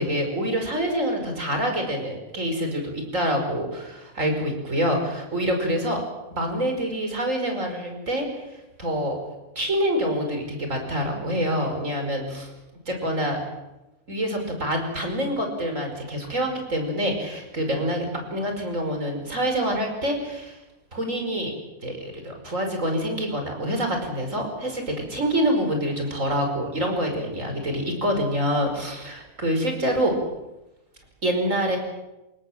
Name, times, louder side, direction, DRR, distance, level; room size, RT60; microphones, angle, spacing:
voice 1, 0.0-6.0 6.3-9.2 9.6-12.5 12.9-13.4 14.1-20.6 20.9-21.5 21.8-30.1 31.2-31.8, equal, 60° right, 4 dB, 5.5 m, -26 dB
28.5 x 17.5 x 7.5 m, 0.98 s
omnidirectional pair, 1.5 m